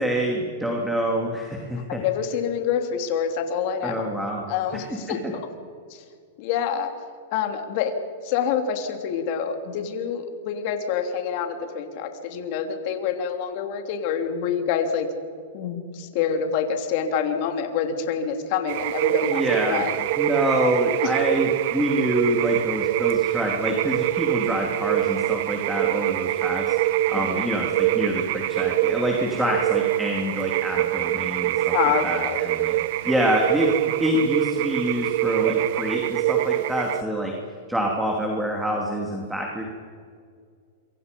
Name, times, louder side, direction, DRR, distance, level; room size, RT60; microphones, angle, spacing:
voice 1, 0.0-2.0 3.8-4.4 4.7-4.8 5.1-5.2 19.2-19.8 20.2-26.8 27.1-31.7 32.0-32.7 33.0-37.3 37.7-39.6, equal, 5° right, -1 dB, 2.8 m, -26 dB
voice 2, 1.9-3.9 4.5-5.2 5.9-6.0 6.4-6.9 7.3-7.9 8.2-15.1 15.5-20.0 27.1-27.4 31.7-32.4, left 7 dB, 50° left, 5 dB, 3.2 m, -27 dB
sound 1, 18.7-37.0, right 16 dB, 55° right, 0.6 m, -25 dB
27.0 x 24.5 x 5.4 m, 2.2 s
hypercardioid pair, 140°, 0 cm